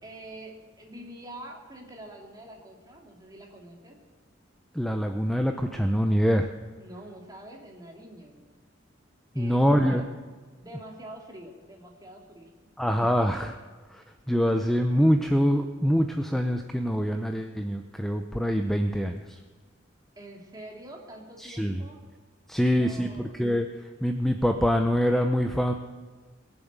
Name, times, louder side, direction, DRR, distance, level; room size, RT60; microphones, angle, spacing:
voice 1, 0.0-4.0 6.8-8.6 9.3-10.1 10.6-12.5 20.2-22.0 22.6-23.4, right 1 dB, 20° right, 0 dB, 2.6 m, -45 dB
voice 2, 4.7-6.5 9.4-10.0 12.8-13.6 13.9-19.4 21.4-21.8 22.5-23.7 24.0-25.7, equal, ahead, 5 dB, 0.6 m, -25 dB
21.0 x 7.2 x 8.1 m, 1.4 s
head